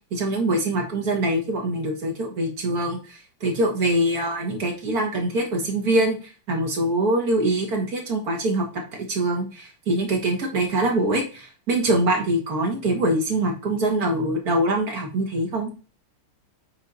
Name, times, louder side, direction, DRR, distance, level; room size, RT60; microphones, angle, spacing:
voice 1, 0.1-6.2 6.5-8.8 9.1-15.7, right 1 dB, 50° right, 1 dB, 2.2 m, -24 dB
6.8 x 4.3 x 4.1 m, 0.34 s
omnidirectional pair, 2.2 m